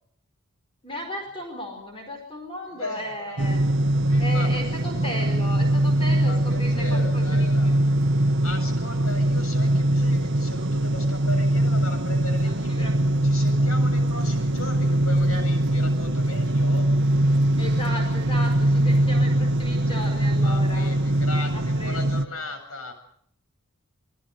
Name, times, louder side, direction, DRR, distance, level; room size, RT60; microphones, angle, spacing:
voice 1, 0.8-3.6 4.2-7.9 12.4-12.9 17.6-20.9 21.5-22.0 22.3-22.4, equal, 25° left, 3 dB, 5.0 m, -35 dB
voice 2, 2.7-3.4 4.1-4.5 6.2-7.7 8.2-12.9 13.2-16.9 20.4-22.9, left 2 dB, 80° left, 6 dB, 7.7 m, -37 dB
sound 1, 3.4-22.3, right 1 dB, 55° right, 1.1 m, -22 dB
29.0 x 19.5 x 6.7 m, 0.66 s
head